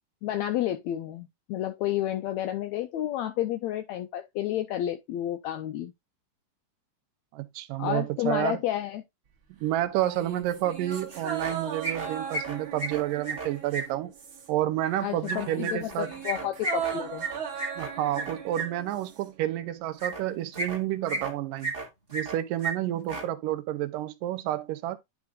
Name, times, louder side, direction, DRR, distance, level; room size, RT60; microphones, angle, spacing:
voice 1, 0.2-5.9 7.8-9.0 15.0-17.3, left 12 dB, 85° left, 1.6 m, -31 dB
voice 2, 7.3-8.6 9.6-14.1 14.5-16.1 17.8-21.7 22.1-25.0, right 13 dB, 80° right, 2.3 m, -30 dB
sound 1, 9.9-14.7 15.0-19.3 19.6-19.7, right 7 dB, 45° right, 2.1 m, -38 dB
sound 2, 10.9-11.5 11.8-13.8 15.2-18.7 20.0-20.2 20.5-21.3 21.6-22.4 22.6-22.7 23.0-23.2, right 2 dB, 20° right, 1.7 m, -33 dB
10.5 x 3.6 x 3.6 m
omnidirectional pair, 3.8 m